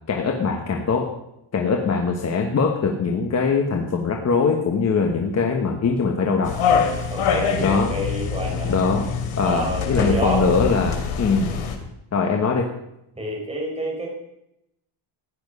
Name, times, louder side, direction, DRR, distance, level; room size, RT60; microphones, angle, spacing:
voice 1, 0.1-1.1 1.5-6.6 7.6-7.9 8.7-9.1 9.4-11.6 12.1-12.7, left 4 dB, 30° left, 2 dB, 1.2 m, -22 dB
sound 1, 6.4-11.8, left 6 dB, 75° left, 2.8 m, -24 dB
voice 2, 7.1-8.7 9.4-10.7 11.5-11.6 13.2-14.1, right 1 dB, 10° right, -2 dB, 4.4 m, -28 dB
16.0 x 10.5 x 5.4 m, 0.83 s
cardioid pair, 170°, 50 cm